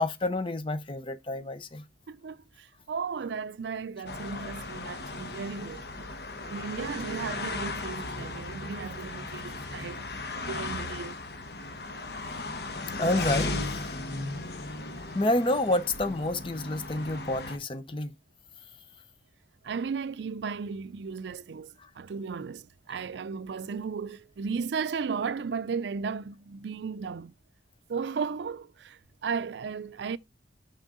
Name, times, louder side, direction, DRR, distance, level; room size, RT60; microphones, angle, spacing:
voice 1, 0.0-1.8 13.0-14.1 15.1-18.1, left 1 dB, 30° left, 0.7 m, -29 dB
voice 2, 2.1-10.1 10.4-11.2 19.6-27.3 27.9-30.2, right 5 dB, 80° right, 0.4 m, -35 dB
sound 1, 4.1-17.6, left 3 dB, 65° left, 1.0 m, -36 dB
6.4 x 5.6 x 3.7 m
head